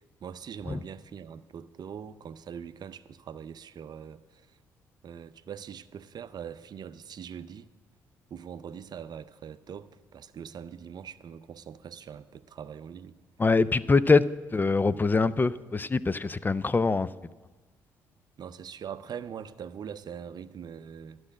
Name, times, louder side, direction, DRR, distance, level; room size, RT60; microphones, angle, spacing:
voice 1, 0.2-4.6 5.0-7.7 8.3-13.2 18.4-21.2, right 8 dB, 45° right, 14 dB, 0.6 m, -42 dB
voice 2, 13.4-17.1, left 4 dB, 20° left, 18 dB, 0.4 m, -24 dB
11.5 x 6.2 x 8.5 m, 1.3 s
hypercardioid pair, 45°, 9 cm